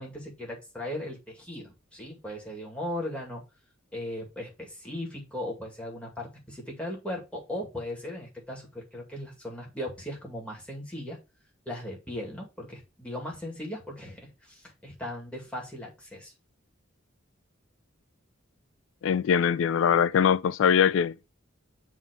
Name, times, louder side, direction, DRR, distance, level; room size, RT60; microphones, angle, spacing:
voice 1, 0.0-3.4 3.9-11.2 11.7-16.3, left 1 dB, 5° left, 2.1 m, -38 dB
voice 2, 19.0-21.3, left 7 dB, 70° left, 0.3 m, -22 dB
7.3 x 3.0 x 5.1 m
head